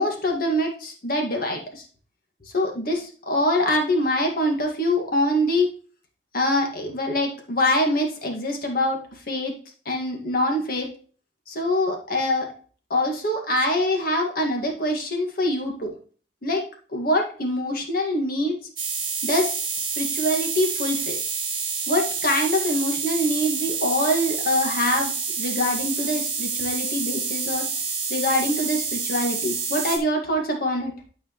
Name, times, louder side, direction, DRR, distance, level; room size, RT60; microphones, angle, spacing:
voice 1, 0.0-1.8 2.5-5.7 6.3-9.0 9.3-9.5 9.9-10.9 11.5-12.5 12.9-15.9 16.4-16.6 16.9-18.6 19.2-21.2 21.9-27.6 28.1-30.9, left 1 dB, 50° left, 2 dB, 1.9 m, -24 dB
sound 1, 18.8-30.0, right 5 dB, 25° right, 1.9 m, -28 dB
12.5 x 4.8 x 3.1 m, 0.41 s
head